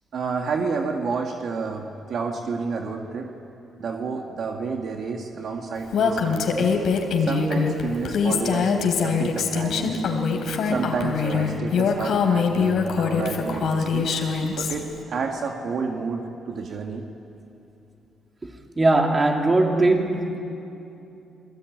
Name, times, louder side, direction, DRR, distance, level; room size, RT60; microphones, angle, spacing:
voice 1, 0.1-3.3 3.8-6.7 7.2-10.0 10.6-14.1 14.5-17.0, right 4 dB, 60° right, 2 dB, 1.9 m, -30 dB
Female speech woman speaking, 5.9-14.7, left 5 dB, 70° left, 3.1 m, -23 dB
voice 2, 18.8-20.4, right 2 dB, 25° right, 2 dB, 3.1 m, -20 dB
28.0 x 19.5 x 9.4 m, 2.8 s
cardioid pair, 90°, 0 cm